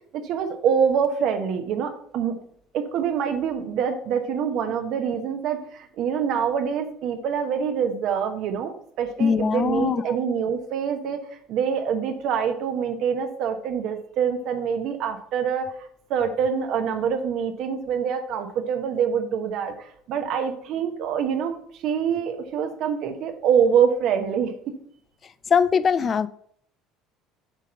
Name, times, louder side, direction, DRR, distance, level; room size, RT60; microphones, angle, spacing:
voice 1, 0.2-2.3 2.7-11.2 11.5-15.7 16.1-19.7 20.1-24.8 26.0-26.1, right 7 dB, 60° right, 7 dB, 1.1 m, -25 dB
voice 2, 9.2-10.0 25.5-26.3, left 6 dB, 35° left, 16 dB, 0.4 m, -21 dB
7.3 x 3.7 x 5.6 m, 0.64 s
hypercardioid pair, 80°, 0 cm